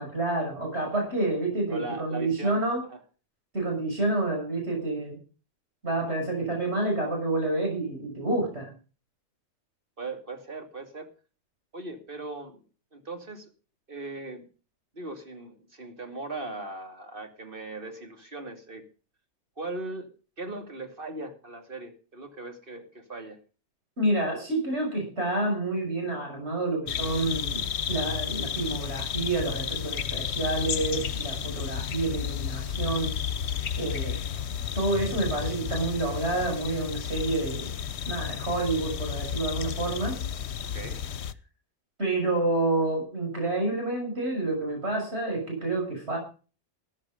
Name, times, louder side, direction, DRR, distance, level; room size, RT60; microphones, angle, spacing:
voice 1, 0.0-2.8 3.5-5.2 5.8-8.7 24.0-27.6 27.9-33.2 33.8-34.1 34.7-37.7 38.0-40.2 42.0-46.2, right 2 dB, 65° right, 1 dB, 6.6 m, -28 dB
voice 2, 1.7-2.6 2.9-3.0 10.0-11.1 11.7-12.6 12.9-13.5 13.9-14.5 14.9-18.8 19.6-20.1 20.4-23.4 40.6-41.0, right 2 dB, 50° right, 5 dB, 2.8 m, -39 dB
sound 1, 26.9-41.3, left 8 dB, 70° left, 1.0 m, -32 dB
13.5 x 11.0 x 5.2 m, 0.36 s
omnidirectional pair, 1.2 m